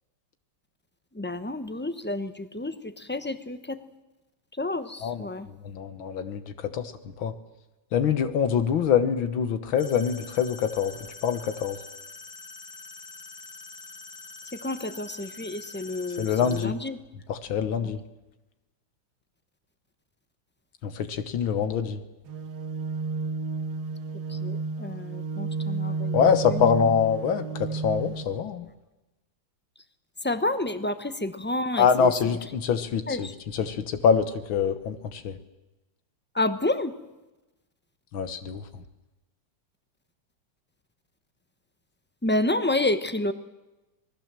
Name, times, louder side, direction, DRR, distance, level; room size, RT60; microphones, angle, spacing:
voice 1, 1.1-3.8 4.5-5.5 14.4-17.0 17.8-17.9 24.3-26.9 30.2-32.1 33.1-33.3 36.3-36.9 42.2-43.3, left 2 dB, 10° left, 11 dB, 0.4 m, -30 dB
voice 2, 5.6-6.9 7.2-7.3 7.9-10.9 11.2-11.8 16.2-16.8 17.3-18.0 20.8-22.0 26.1-28.7 31.8-33.3 33.5-35.4 38.1-38.6, left 7 dB, 90° left, 10 dB, 2.1 m, -25 dB
sound 1, 9.8-16.6, left 4 dB, 55° left, 2.7 m, -45 dB
sound 2, 22.3-28.2, right 4 dB, 75° right, 2.1 m, -32 dB
26.5 x 20.0 x 7.6 m, 1.0 s
omnidirectional pair, 2.1 m